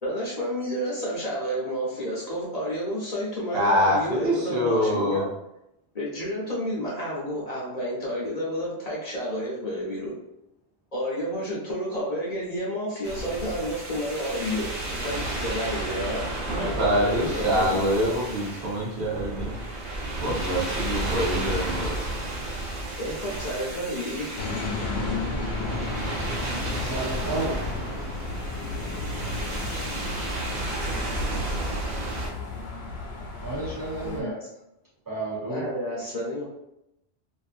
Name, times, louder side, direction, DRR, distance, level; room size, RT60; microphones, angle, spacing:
voice 1, 0.0-5.3 5.9-10.1 10.9-18.1 21.0-21.5 23.0-24.3 34.0-34.4 35.4-36.5, equal, 40° left, -5 dB, 0.8 m, -30 dB
voice 2, 3.5-5.2 16.5-19.5 20.2-22.1, equal, 65° right, -3 dB, 0.9 m, -25 dB
sound 1, 13.0-32.3, right 2 dB, 85° right, 1.0 m, -32 dB
sound 2, 24.4-34.2, left 3 dB, 70° left, 0.8 m, -33 dB
voice 3, 26.8-27.7 33.4-34.3 35.1-35.7, right 2 dB, 35° right, -7 dB, 0.3 m, -31 dB
2.5 x 2.4 x 2.4 m, 0.85 s
omnidirectional pair, 1.1 m